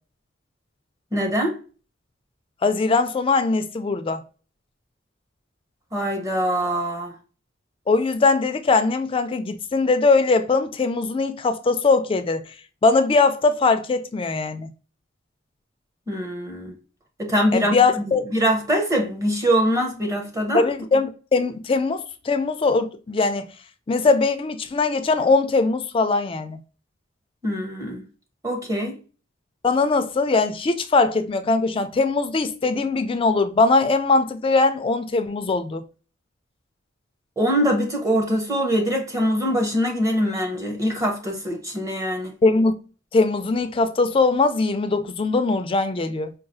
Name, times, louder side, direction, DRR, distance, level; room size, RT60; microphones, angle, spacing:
voice 1, 1.1-1.6 5.9-7.1 16.1-16.8 17.2-20.7 27.4-28.0 28.4-29.0 37.4-42.3, equal, 15° right, 0.8 m, -23 dB
voice 2, 2.6-4.2 7.9-12.4 12.8-14.7 17.5-18.2 20.5-23.5 23.9-26.6 29.6-35.8 42.4-42.7 43.1-46.3, left 3 dB, 25° left, 0.3 m, -21 dB
4.7 x 2.3 x 2.6 m
head